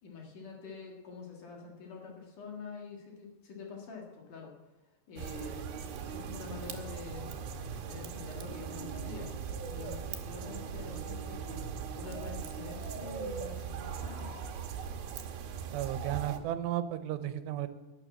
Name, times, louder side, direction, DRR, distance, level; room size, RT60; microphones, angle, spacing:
voice 1, 0.0-4.5 5.1-5.6 6.0-7.3 7.7-9.3 9.7-11.6 11.9-14.3, left 5 dB, 55° left, 0 dB, 3.0 m, -46 dB
sound 1, 5.2-16.4, right 7 dB, 70° right, 2.7 m, -39 dB
voice 2, 15.7-17.7, right 12 dB, 90° right, 11 dB, 2.9 m, -34 dB
12.0 x 9.5 x 7.6 m, 1.1 s
omnidirectional pair, 4.8 m